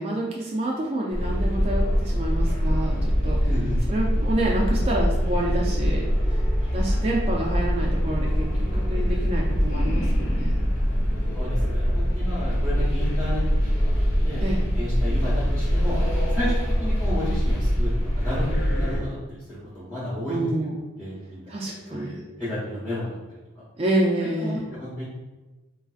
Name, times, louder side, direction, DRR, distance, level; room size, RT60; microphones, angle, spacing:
voice 1, 0.0-3.5 3.9-6.4 6.7-10.7 14.4-14.6 20.3-20.8 21.5-22.1 23.8-24.7, right 1 dB, 30° right, -3 dB, 0.3 m, -28 dB
sound 1, 1.1-19.0, equal, 85° left, 1.3 m, -23 dB
voice 2, 3.5-3.8 11.2-13.4 13.7-14.4 14.7-16.0 16.3-16.5 16.8-18.5 18.7-20.4 21.0-21.5 21.9-23.4 24.4-25.0, left 1 dB, 5° left, -11 dB, 0.8 m, -32 dB
3.9 x 2.5 x 2.3 m, 1.2 s
head